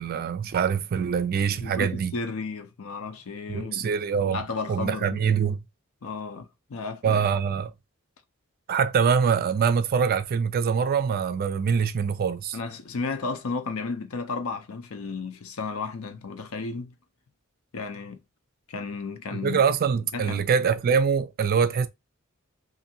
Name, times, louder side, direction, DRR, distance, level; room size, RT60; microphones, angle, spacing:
voice 1, 0.0-2.1 3.5-4.4 4.7-5.6 7.0-7.7 8.7-12.6 19.3-21.9, right 6 dB, 45° right, 0.3 m, -24 dB
voice 2, 1.6-3.9 4.2-5.2 6.0-7.3 12.5-16.9 17.7-18.2 18.7-19.6 20.1-20.5, left 4 dB, 75° left, 0.6 m, -33 dB
2.7 x 2.5 x 2.7 m
head